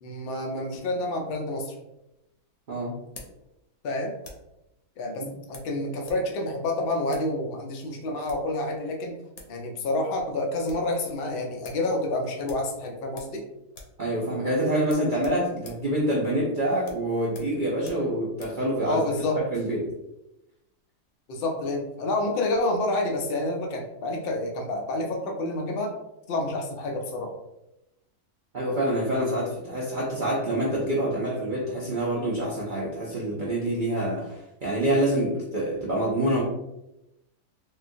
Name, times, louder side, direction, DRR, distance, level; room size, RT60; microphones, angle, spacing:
voice 1, 0.0-1.7 3.8-4.1 5.0-9.2 9.5-13.5 18.9-19.4 21.3-25.9 26.3-27.4, left 2 dB, 80° left, 1 dB, 0.5 m, -28 dB
sound 1, 1.7-4.6 5.5-6.3 6.5-6.6 7.1-7.3 8.1-8.6 9.1-9.2 9.4-9.6 9.9-10.0 10.3-10.9 11.3-11.4 11.6-11.9 12.4-13.4 13.7-14.0 14.3-14.4 14.8-18.6, left 3 dB, 60° left, 0.9 m, -48 dB
voice 2, 14.0-19.0 19.3-19.9 28.5-36.4, right 1 dB, 65° right, -5 dB, 0.4 m, -26 dB
3.7 x 2.3 x 2.5 m, 0.90 s
omnidirectional pair, 1.6 m